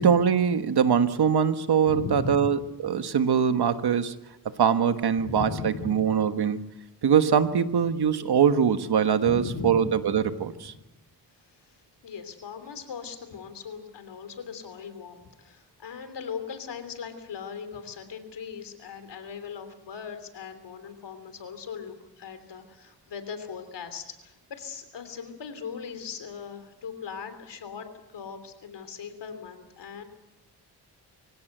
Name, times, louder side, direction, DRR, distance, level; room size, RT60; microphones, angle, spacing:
voice 1, 0.0-4.1 4.6-6.7 7.0-10.7, right 7 dB, 70° right, 9 dB, 1.4 m, -23 dB
voice 2, 1.9-2.5 5.2-6.1 9.2-9.9 10.7-10.8 12.0-30.0, left 6 dB, 85° left, 9 dB, 3.2 m, -39 dB
25.0 x 16.5 x 7.9 m, 0.97 s
cardioid pair, 90°, 41 cm